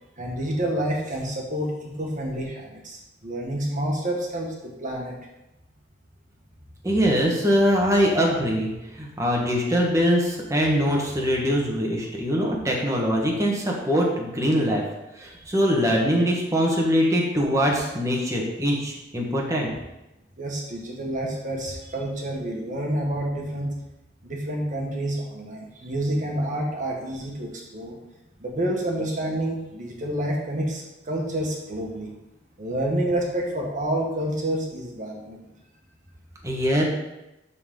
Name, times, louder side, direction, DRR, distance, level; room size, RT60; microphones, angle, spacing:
voice 1, 0.2-5.2 20.4-23.7 24.2-28.0 28.4-32.1 32.6-35.4, right 1 dB, 45° right, -1 dB, 1.5 m, -28 dB
voice 2, 6.8-8.7 9.0-14.8 15.2-19.7 36.4-36.8, equal, 15° right, -2 dB, 1.5 m, -22 dB
12.5 x 4.2 x 3.8 m, 0.96 s
head